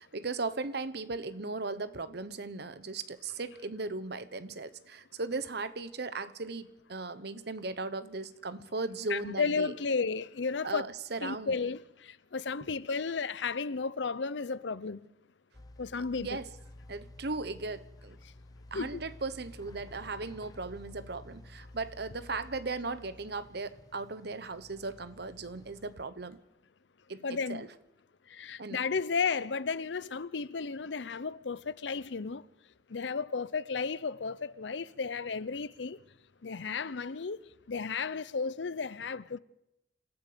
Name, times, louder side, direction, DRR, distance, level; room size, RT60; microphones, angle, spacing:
voice 1, 0.0-9.7 10.6-11.5 16.2-16.5 16.9-18.2 18.7-26.4 27.1-27.7 28.6-28.8, right 3 dB, 65° right, 1.1 m, -37 dB
voice 2, 9.1-10.8 11.2-15.0 15.8-16.3 18.7-19.0 27.2-27.7 28.3-32.4 32.9-36.0 36.4-37.4 37.7-39.4, left 5 dB, 80° left, 0.7 m, -33 dB
sound 1, 15.5-26.0, left 1 dB, 20° left, 0.7 m, -52 dB
27.5 x 14.0 x 6.9 m
head